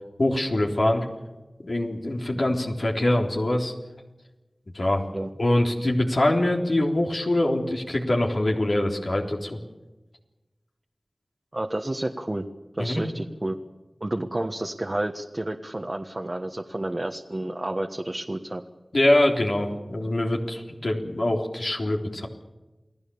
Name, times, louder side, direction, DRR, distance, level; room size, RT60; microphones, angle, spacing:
voice 1, 0.2-1.1 1.6-3.7 4.7-5.0 5.4-9.6 12.8-13.0 18.9-22.3, left 1 dB, 70° left, 0 dB, 3.7 m, -24 dB
voice 2, 11.5-12.5 12.8-13.5 14.0-18.6, right 1 dB, 40° right, 2 dB, 1.4 m, -30 dB
29.0 x 18.0 x 7.1 m, 1.1 s
wide cardioid pair, 40°, 0 cm